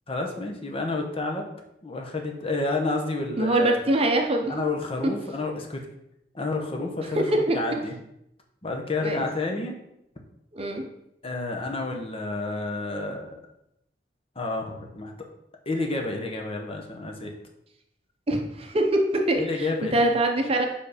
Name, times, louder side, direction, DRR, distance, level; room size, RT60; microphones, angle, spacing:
voice 1, 0.1-1.4 1.8-3.8 4.5-5.8 6.3-7.9 8.6-9.7 11.2-13.3 14.4-15.1 15.7-17.3 19.4-20.1, left 3 dB, 30° left, 2 dB, 0.9 m, -30 dB
voice 2, 3.4-4.5 7.1-7.6 9.0-9.2 10.5-10.8 18.3-20.7, right 1 dB, 35° right, 3 dB, 0.8 m, -23 dB
5.3 x 4.8 x 5.0 m, 0.80 s
head